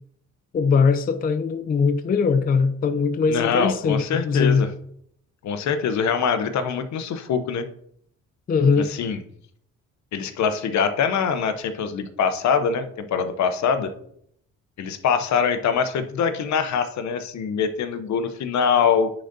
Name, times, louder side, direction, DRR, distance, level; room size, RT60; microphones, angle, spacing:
voice 1, 0.5-4.6 8.5-8.9, left 5 dB, 30° left, 0.4 m, -21 dB
voice 2, 3.3-4.7 5.4-7.6 8.9-9.2 10.1-13.9 14.8-19.1, left 6 dB, 65° left, 0.8 m, -23 dB
10.0 x 3.9 x 2.7 m
cardioid pair, 90°, 30 cm